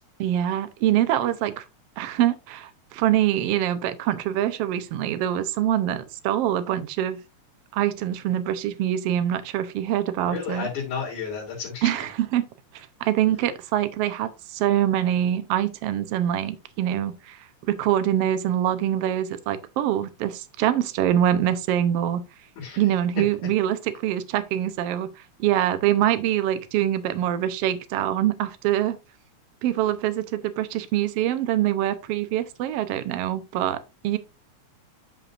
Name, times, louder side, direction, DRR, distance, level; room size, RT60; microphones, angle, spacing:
voice 1, 0.2-1.6 2.0-7.2 7.7-10.7 11.8-12.5 12.7-17.4 17.7-22.2 22.8-25.1 25.4-29.0 29.6-34.2, right 11 dB, 70° right, 1.6 m, -24 dB
voice 2, 10.3-12.0 22.6-22.8, left 6 dB, 75° left, 4.4 m, -32 dB
11.5 x 5.4 x 2.5 m
omnidirectional pair, 3.4 m